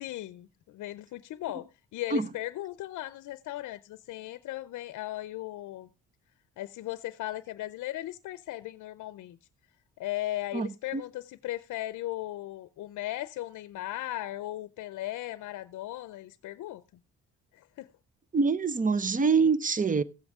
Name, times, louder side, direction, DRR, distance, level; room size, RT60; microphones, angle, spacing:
voice 1, 0.0-5.9 6.6-9.4 10.0-16.8 17.5-17.9, left 15 dB, 75° left, 0.6 m, -37 dB
voice 2, 18.3-20.0, right 5 dB, 25° right, 0.8 m, -25 dB
15.5 x 7.9 x 3.6 m
cardioid pair, 90°, 30 cm